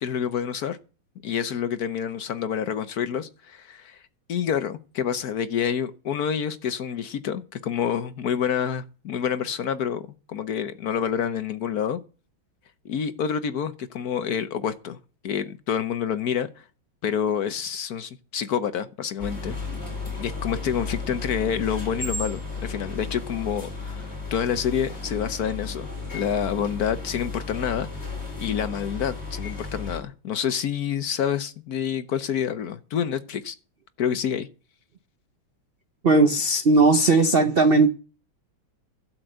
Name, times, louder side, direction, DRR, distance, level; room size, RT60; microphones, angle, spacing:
voice 1, 0.0-0.8 1.2-4.0 4.3-12.0 12.8-15.0 15.2-16.6 17.0-19.6 20.2-25.9 26.1-27.9 28.4-33.5 34.0-34.5, left 8 dB, 60° left, 1.1 m, -28 dB
sound 1, 19.2-30.0, left 3 dB, 30° left, 4.7 m, -34 dB
voice 2, 36.0-37.9, right 3 dB, 65° right, 0.5 m, -17 dB
12.0 x 6.2 x 7.8 m
omnidirectional pair, 2.1 m